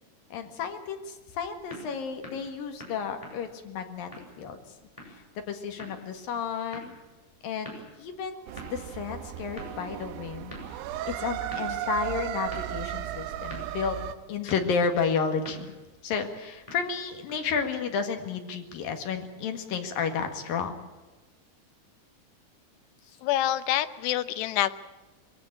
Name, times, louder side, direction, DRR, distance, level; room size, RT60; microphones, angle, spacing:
voice 1, 0.3-4.1 4.4-4.6 5.0-6.9 7.4-10.8 11.1-14.0 14.3-15.7 16.0-20.9 23.1-23.2, left 6 dB, 60° left, 5 dB, 3.2 m, -32 dB
sound 1, 1.2-17.6, left 1 dB, 5° left, 6.2 m, -49 dB
sound 2, 8.5-14.2, right 12 dB, 75° right, 2.8 m, -35 dB
voice 2, 23.2-24.7, left 13 dB, 75° left, 12 dB, 2.8 m, -26 dB
23.0 x 16.0 x 8.8 m, 1.2 s
omnidirectional pair, 5.3 m